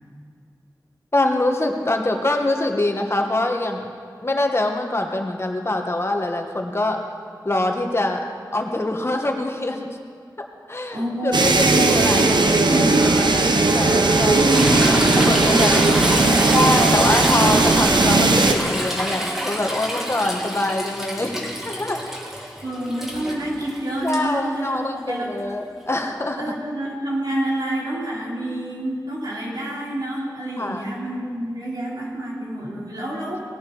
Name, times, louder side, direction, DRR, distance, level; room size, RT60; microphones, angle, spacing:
voice 1, 1.1-3.9 4.2-7.0 7.4-8.2 8.5-10.0 10.7-12.8 13.1-14.5 15.3-15.8 16.5-21.4 21.6-22.0 24.0-26.4 30.6-30.8, left 1 dB, 35° left, 3 dB, 1.3 m, -24 dB
voice 2, 10.9-13.1 14.3-14.9 15.5-16.7 22.6-25.3 26.3-33.4, right 1 dB, 65° right, -5 dB, 3.3 m, -27 dB
sound 1, 11.3-18.5, right 3 dB, 80° right, 0.9 m, -17 dB
Toilet flush / Trickle dribble, 14.5-24.2 26.0-26.1, equal, 5° right, 2.3 m, -27 dB
19.0 x 11.0 x 3.9 m, 2.2 s
wide cardioid pair, 75°, 8 cm